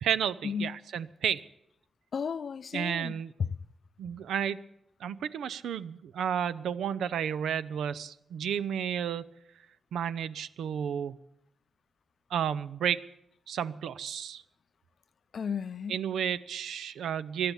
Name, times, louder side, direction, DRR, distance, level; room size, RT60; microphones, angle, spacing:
voice 1, 0.0-1.4 2.7-3.3 4.0-4.6 5.0-9.3 9.9-11.2 12.3-13.1 13.5-14.4 15.9-17.5, right 8 dB, 85° right, 0.5 m, -32 dB
voice 2, 2.1-3.5 15.3-16.0, left 6 dB, 65° left, 0.5 m, -34 dB
16.0 x 11.5 x 7.1 m
cardioid pair, 60°, 0 cm